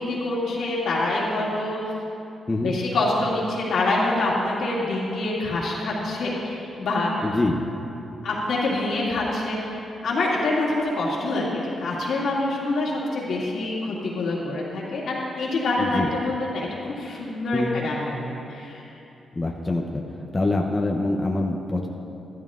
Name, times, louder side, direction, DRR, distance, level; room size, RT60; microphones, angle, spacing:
voice 1, 0.0-1.9 2.6-7.2 8.2-9.7 10.0-18.8, left 2 dB, 75° left, -5 dB, 2.3 m, -26 dB
voice 2, 7.2-7.6 15.8-16.1 17.5-17.8 19.3-20.0 20.3-21.9, left 2 dB, 25° left, 0 dB, 0.7 m, -25 dB
13.0 x 12.5 x 2.5 m, 2.9 s
cardioid pair, 90°, 0 cm